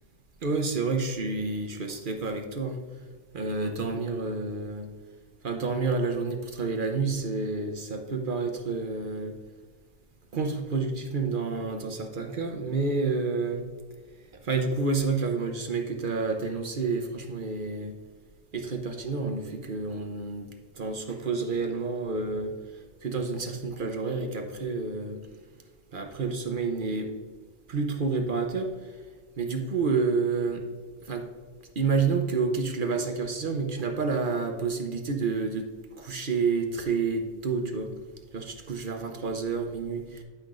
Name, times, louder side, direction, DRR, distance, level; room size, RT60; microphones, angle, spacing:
voice 1, 0.4-2.8 3.3-4.9 5.4-9.4 10.3-13.7 14.4-18.0 18.5-20.5 20.7-25.2 25.9-27.1 27.7-29.0 29.4-30.7 31.0-31.3 31.8-35.7 36.0-37.9 38.3-40.2, right 4 dB, 45° right, 4 dB, 0.9 m, -29 dB
11.5 x 5.8 x 2.5 m, 1.5 s
omnidirectional pair, 1.3 m